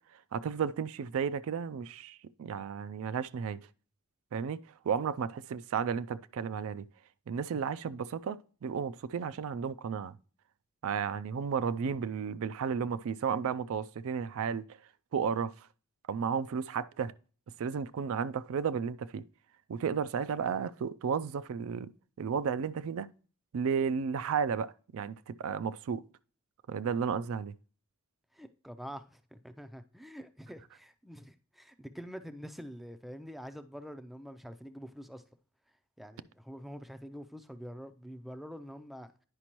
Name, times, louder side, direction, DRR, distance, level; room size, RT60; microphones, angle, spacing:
voice 1, 0.3-3.7 4.3-4.6 4.8-6.9 7.3-10.2 10.8-14.8 15.1-15.5 16.1-17.1 17.6-19.2 19.7-21.9 22.2-23.1 23.5-26.0 26.7-27.5, right 6 dB, 65° right, 0.4 m, -33 dB
voice 2, 28.3-35.2 36.0-39.1, equal, ahead, 0.4 m, -46 dB
9.8 x 5.1 x 2.9 m
head